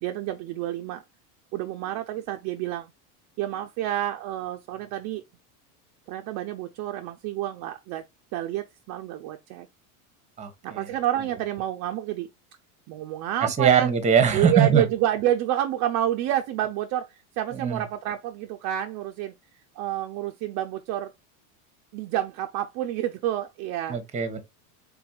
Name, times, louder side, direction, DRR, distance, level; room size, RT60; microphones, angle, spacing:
voice 1, 0.0-1.0 1.5-2.9 3.4-5.2 6.1-8.1 8.3-9.7 10.6-12.3 12.9-13.9 14.3-19.3 19.8-21.1 21.9-24.0, right 12 dB, 40° right, 0.5 m, -29 dB
voice 2, 10.4-10.9 13.4-14.9 17.5-17.8 23.9-24.4, right 7 dB, 15° right, 0.9 m, -22 dB
4.3 x 3.8 x 2.3 m
supercardioid pair, 145°, 44 cm